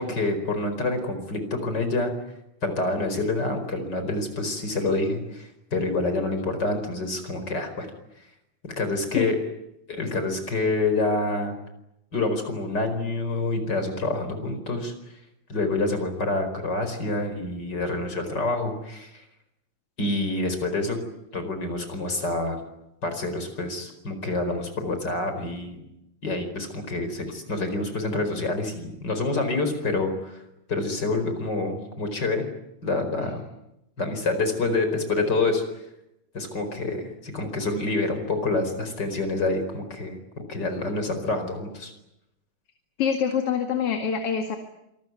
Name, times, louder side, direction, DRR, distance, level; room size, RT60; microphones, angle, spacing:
voice 1, 0.0-2.1 2.6-7.9 8.6-9.4 9.9-11.5 12.1-14.9 15.5-19.3 20.0-21.0 21.3-22.6 23.0-25.8 26.2-30.4 30.7-32.4 32.8-33.4 34.0-35.8 36.3-40.2 40.5-41.9, left 2 dB, 35° left, 7 dB, 5.2 m, -27 dB
voice 2, 43.0-44.6, left 7 dB, 55° left, 5 dB, 3.0 m, -25 dB
27.0 x 21.0 x 9.6 m, 0.86 s
omnidirectional pair, 3.3 m